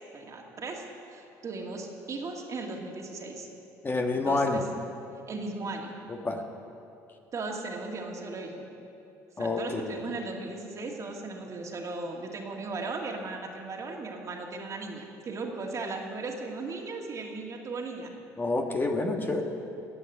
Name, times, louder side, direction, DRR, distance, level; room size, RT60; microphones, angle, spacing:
voice 1, 0.1-3.5 4.2-4.6 5.3-6.0 7.3-8.6 9.4-18.1 19.2-19.4, right 3 dB, 45° right, 1 dB, 2.2 m, -37 dB
voice 2, 3.8-4.6 6.1-6.4 9.4-9.9 18.4-19.4, left 3 dB, 25° left, 3 dB, 1.4 m, -28 dB
17.0 x 6.3 x 9.6 m, 2.8 s
supercardioid pair, 75°, 8 cm